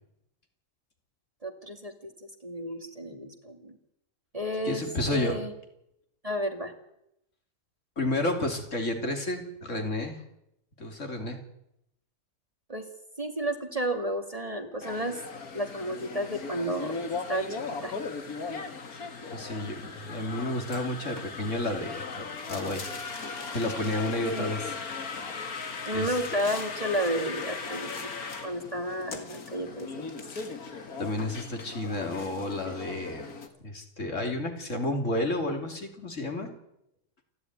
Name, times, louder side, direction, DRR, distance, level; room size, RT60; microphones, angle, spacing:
voice 1, 1.4-2.1 2.4-3.8 4.3-4.8 5.1-5.5 6.2-6.7 12.7-12.8 13.2-15.2 15.5-17.0 17.3-18.0 24.3-24.5 25.9-28.1 28.4-29.9, equal, 25° right, 5 dB, 2.3 m, -32 dB
voice 2, 4.6-5.4 8.0-10.2 10.8-11.4 19.3-23.2 23.5-24.8 25.9-26.2 30.3-30.4 31.0-33.2 33.6-36.5, left 1 dB, 55° left, 3 dB, 3.3 m, -31 dB
sound 1, 14.8-33.5, left 4 dB, 85° left, 2.5 m, -38 dB
28.5 x 11.0 x 9.6 m, 0.82 s
omnidirectional pair, 1.5 m